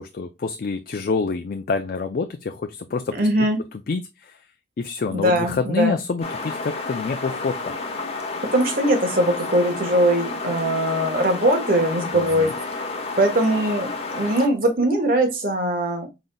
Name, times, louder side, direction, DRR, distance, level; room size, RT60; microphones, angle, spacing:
voice 1, 0.0-3.5 3.9-4.4 4.8-7.8 12.1-12.5, left 4 dB, 50° left, 7 dB, 0.4 m, -27 dB
voice 2, 3.1-3.6 5.1-6.0 8.5-12.7 13.2-16.1, right 1 dB, 50° right, 4 dB, 1.3 m, -21 dB
sound 1, 6.2-14.5, left 3 dB, 35° left, 1.0 m, -31 dB
5.0 x 4.0 x 2.2 m, 0.23 s
head